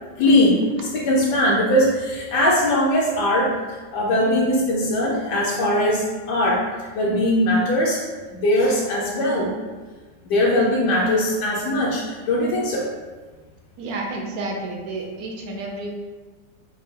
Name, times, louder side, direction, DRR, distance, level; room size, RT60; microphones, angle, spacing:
voice 1, 0.2-0.6 0.9-6.6 6.9-8.1 8.4-9.5 10.3-12.9, left 1 dB, 70° left, -4 dB, 1.2 m, -20 dB
voice 2, 13.8-15.9, right 2 dB, 65° right, 1 dB, 1.0 m, -30 dB
4.5 x 2.3 x 4.8 m, 1.3 s
omnidirectional pair, 1.9 m